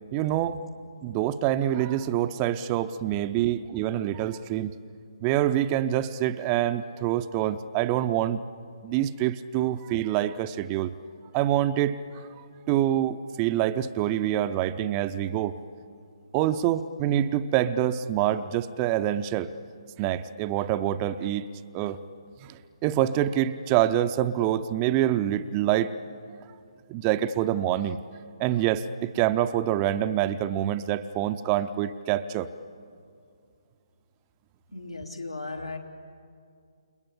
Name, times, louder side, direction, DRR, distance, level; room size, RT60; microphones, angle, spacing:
voice 1, 0.1-0.6 1.0-4.7 5.2-8.4 8.8-10.9 11.3-12.3 12.7-15.6 16.3-19.5 20.0-21.5 21.7-22.0 22.4-25.9 26.9-28.0 28.4-32.5, right 12 dB, 20° right, 11 dB, 0.6 m, -26 dB
voice 2, 34.7-35.8, left 3 dB, 85° left, 1 dB, 3.3 m, -36 dB
29.0 x 21.5 x 8.6 m, 2.3 s
figure-of-eight pair, 140°, 3 cm